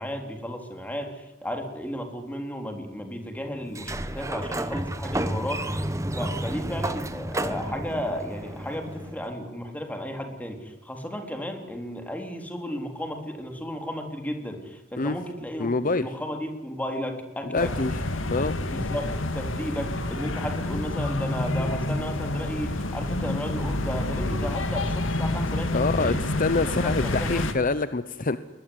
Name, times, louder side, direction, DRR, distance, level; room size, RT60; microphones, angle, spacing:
voice 1, 0.0-5.6 6.2-17.7 18.4-26.2 26.6-27.4, equal, 10° left, 5 dB, 3.7 m, -34 dB
Sliding door, 3.7-9.3, right 1 dB, 15° right, 1.2 m, -31 dB
voice 2, 15.6-16.1 17.5-18.0 18.3-18.6 25.7-28.4, left 3 dB, 45° left, 13 dB, 0.9 m, -25 dB
sound 1, 17.6-27.5, left 1 dB, 80° left, 2.3 m, -28 dB
22.0 x 20.5 x 9.7 m, 1.0 s
head